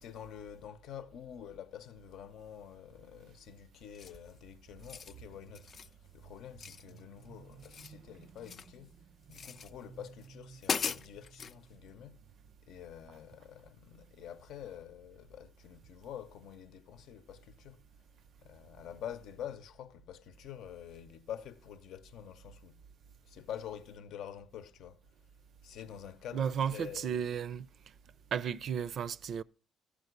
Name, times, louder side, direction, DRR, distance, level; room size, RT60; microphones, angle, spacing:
voice 1, 0.0-9.0 9.3-12.2 12.6-17.8 18.4-22.8 23.2-25.1 25.6-27.2, left 9 dB, 80° left, 0.8 m, -47 dB
sound 1, 3.9-4.3 4.7-5.2 5.5-5.9 6.6-7.3 7.5-8.8 9.3-9.7 10.2-10.3 10.6-11.6, left 6 dB, 55° left, 0.4 m, -39 dB
voice 2, 26.3-27.7 28.3-29.4, right 7 dB, 65° right, 0.5 m, -34 dB
14.0 x 5.0 x 8.0 m
cardioid pair, 90°, 0 cm